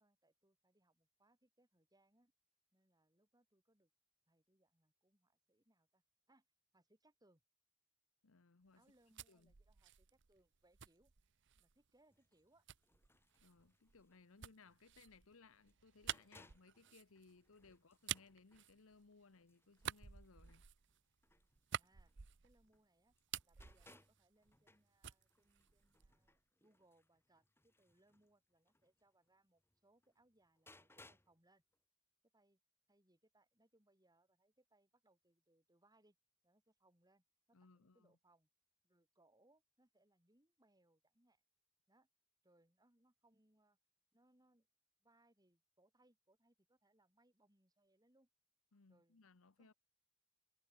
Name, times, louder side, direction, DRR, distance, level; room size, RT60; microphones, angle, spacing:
voice 1, 0.0-2.3 2.7-3.9 4.3-6.4 6.7-7.4 8.8-11.1 11.5-12.6 17.7-17.8 21.7-22.1 22.4-23.1 23.4-31.6 32.3-32.6 32.9-36.2 36.4-38.5 38.8-41.4 41.9-42.1 42.4-43.8 44.1-44.7 45.0-48.3 48.9-49.2 49.6-49.7, right 1 dB, 20° right, 6.1 m, -76 dB
voice 2, 8.2-8.8 9.3-9.5 13.4-20.6 37.5-38.2 48.7-49.7, left 4 dB, 80° left, 1.0 m, -65 dB
sound 1, 8.8-11.8 12.7-19.3 19.7-22.8 23.1-24.8 25.0-26.3, right 10 dB, 60° right, 0.9 m, -50 dB
sound 2, 12.1-22.9 23.1-31.4 31.7-31.8, left 2 dB, 10° left, 2.7 m, -70 dB
head